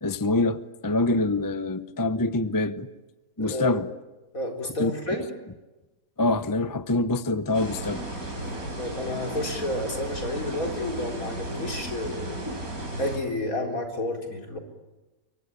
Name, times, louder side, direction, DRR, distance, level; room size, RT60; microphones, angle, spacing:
voice 1, 0.0-2.9 3.4-3.9 4.8-4.9 6.2-8.0, left 2 dB, 20° left, 0.7 m, -25 dB
voice 2, 3.4-3.8 4.3-5.3 8.8-12.5 13.0-14.6, left 1 dB, 70° left, 4.5 m, -31 dB
sound 1, 7.5-13.2, right 1 dB, 80° right, 5.3 m, -34 dB
25.5 x 24.0 x 9.9 m
omnidirectional pair, 1.5 m